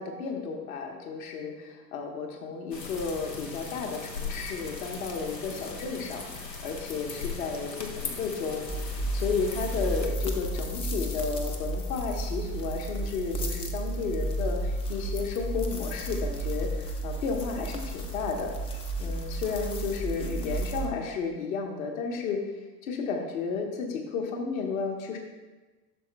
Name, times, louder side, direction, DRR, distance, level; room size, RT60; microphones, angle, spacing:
voice 1, 0.0-22.4 22.8-25.2, left 5 dB, 55° left, 2 dB, 1.3 m, -33 dB
sound 1, 2.7-10.1, left 4 dB, 85° left, 0.9 m, -39 dB
sound 2, 8.7-20.9, right 1 dB, 15° left, 0.4 m, -32 dB
11.5 x 6.5 x 2.3 m, 1.2 s
figure-of-eight pair, 80°, 49 cm